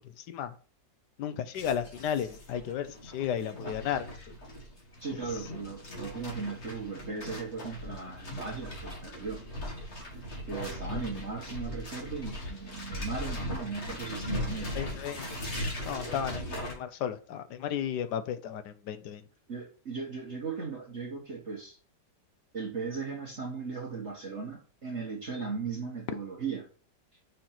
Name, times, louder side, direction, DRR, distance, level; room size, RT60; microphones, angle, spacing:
voice 1, 1.2-4.1 14.7-15.3 15.9-19.2, left 9 dB, 70° left, 1.3 m, -33 dB
sound 1, 1.6-16.7, equal, 40° left, 2.1 m, -39 dB
voice 2, 5.0-9.4 10.5-14.8 15.1-15.2 19.5-21.8 22.5-26.7, right 5 dB, 40° right, 1.6 m, -37 dB
5.9 x 4.2 x 5.8 m
omnidirectional pair, 1.9 m